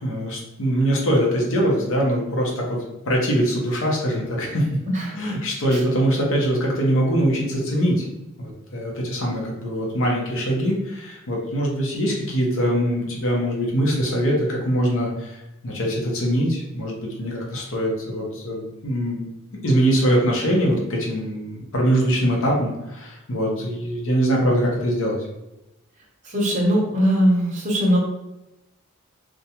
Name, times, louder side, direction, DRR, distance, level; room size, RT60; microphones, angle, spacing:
voice 1, 0.0-4.7 5.1-8.1 8.4-19.3 19.6-25.2, equal, 65° left, -2 dB, 0.7 m, -23 dB
voice 2, 26.2-28.0, equal, 35° right, -2 dB, 0.7 m, -20 dB
2.5 x 2.2 x 2.8 m, 0.94 s
head